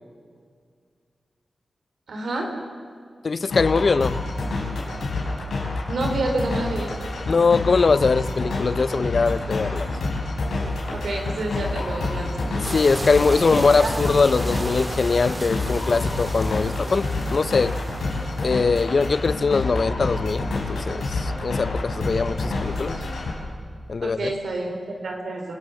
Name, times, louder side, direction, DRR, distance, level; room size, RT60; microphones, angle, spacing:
voice 1, 2.1-2.5 5.9-6.9 10.9-12.7 13.4-13.9 24.0-25.5, right 2 dB, 85° right, 2 dB, 4.0 m, -29 dB
voice 2, 3.2-4.2 7.3-9.9 12.5-17.8 18.4-23.0 23.9-24.3, left 4 dB, 60° left, 16 dB, 0.7 m, -22 dB
sound 1, 3.5-23.3, left 2 dB, 90° left, 4.9 m, -28 dB
sound 2, 12.6-18.5, right 1 dB, 30° right, 2.8 m, -35 dB
27.0 x 19.0 x 7.2 m, 2.1 s
cardioid pair, 60°, 0 cm